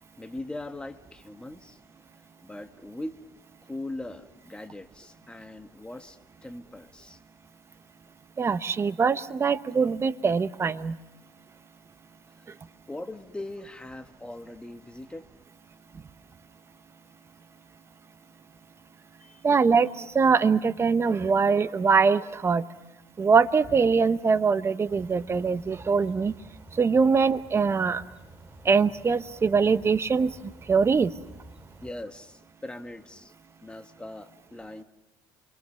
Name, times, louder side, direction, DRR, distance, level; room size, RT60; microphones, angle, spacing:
voice 1, 0.2-1.8 2.4-3.2 3.7-7.2 12.9-15.3 19.2-19.4 27.1-27.3 31.8-33.3 33.6-34.8, left 1 dB, 10° left, 7 dB, 1.6 m, -40 dB
voice 2, 8.4-11.0 19.4-22.6 23.2-26.3 26.8-28.0 28.6-30.3 30.7-31.1, right 5 dB, 25° right, 13 dB, 1.0 m, -23 dB
sound 1, 24.9-31.9, right 1 dB, 10° right, 4.0 m, -50 dB
29.0 x 23.5 x 5.8 m, 0.92 s
supercardioid pair, 95°, 10 cm